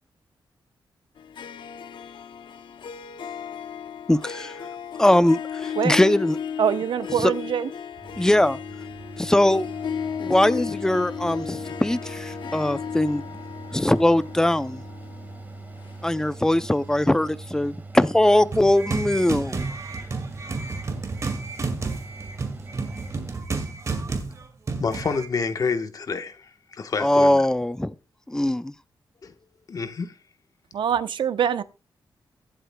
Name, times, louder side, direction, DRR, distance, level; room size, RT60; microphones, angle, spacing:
Harp, 1.2-16.5, left 7 dB, 75° left, 0.7 m, -35 dB
voice 1, 4.1-4.5 5.0-6.4 7.2-7.3 8.2-8.6 9.2-9.7 10.2-13.2 13.7-14.8 16.0-19.6 27.0-27.9 28.3-28.7, left 1 dB, 5° left, 0.5 m, -21 dB
voice 2, 6.6-7.7 30.7-31.6, right 8 dB, 80° right, 0.8 m, -24 dB
Mechanical fan, 8.0-23.4, right 3 dB, 20° right, 1.7 m, -41 dB
sound 1, 18.5-25.3, right 4 dB, 40° right, 2.0 m, -31 dB
voice 3, 24.8-27.4 29.2-29.3 29.7-30.1, left 5 dB, 50° left, 1.2 m, -28 dB
22.5 x 7.9 x 2.2 m
wide cardioid pair, 140°, 8 cm